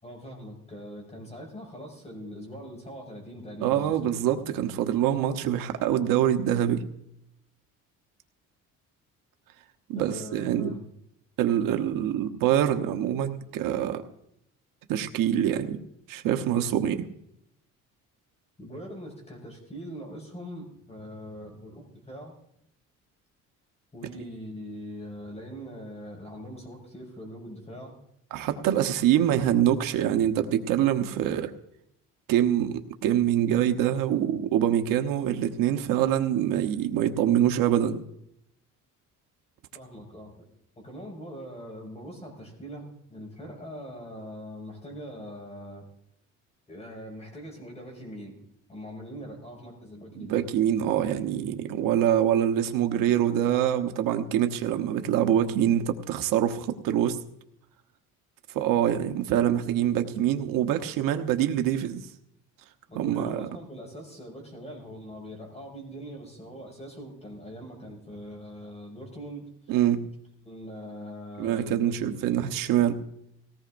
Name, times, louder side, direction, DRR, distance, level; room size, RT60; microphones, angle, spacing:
voice 1, 0.0-4.1 4.5-4.6 9.9-10.8 18.6-22.4 23.9-28.0 28.9-29.0 39.7-40.5 40.8-45.8 46.7-48.4 48.7-50.5 62.9-69.5 70.4-72.3, equal, 20° left, 0 dB, 6.0 m, -42 dB
voice 2, 3.6-6.8 9.9-10.7 11.4-14.0 14.9-15.8 16.1-17.1 28.3-31.5 32.3-38.0 50.2-57.2 58.5-62.0 62.9-63.5 69.7-70.0 71.4-72.9, right 10 dB, 85° right, 7 dB, 1.1 m, -25 dB
19.5 x 17.5 x 2.6 m, 0.77 s
cardioid pair, 130°, 32 cm